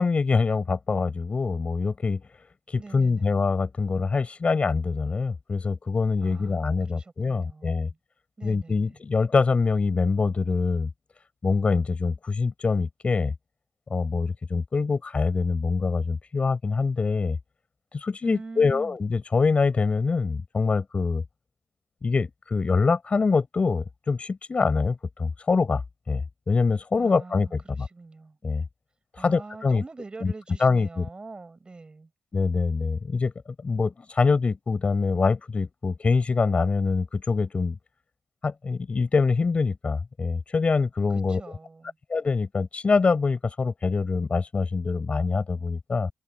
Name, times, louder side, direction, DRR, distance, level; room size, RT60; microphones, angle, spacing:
voice 1, 0.0-2.2 2.7-7.9 8.4-10.9 11.4-13.3 13.9-17.4 17.9-21.2 22.0-25.8 26.1-26.2 26.5-27.9 28.4-28.6 29.2-29.8 30.2-30.3 30.6-31.1 32.3-33.3 33.6-37.8 38.4-41.4 42.1-46.1, left 4 dB, 40° left, 5.9 m, -24 dB
voice 2, 2.8-3.4 6.2-8.0 8.4-9.0 18.2-19.0 27.0-28.4 29.2-32.1 41.3-42.0, right 3 dB, 30° right, 7.0 m, -44 dB
cardioid pair, 75°, 3 cm